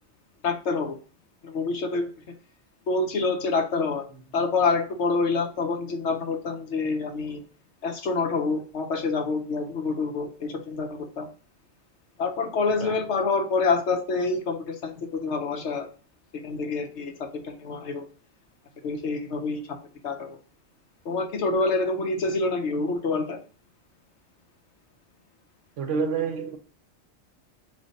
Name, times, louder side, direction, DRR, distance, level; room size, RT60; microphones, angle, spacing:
voice 1, 0.4-1.0 1.4-2.1 2.9-4.0 4.3-7.5 7.8-11.3 12.2-15.9 16.3-18.1 18.8-20.4 21.0-23.4, left 4 dB, 65° left, 1.0 m, -27 dB
voice 2, 25.8-26.6, right 5 dB, 70° right, 1.0 m, -28 dB
3.9 x 3.2 x 3.9 m
omnidirectional pair, 1.4 m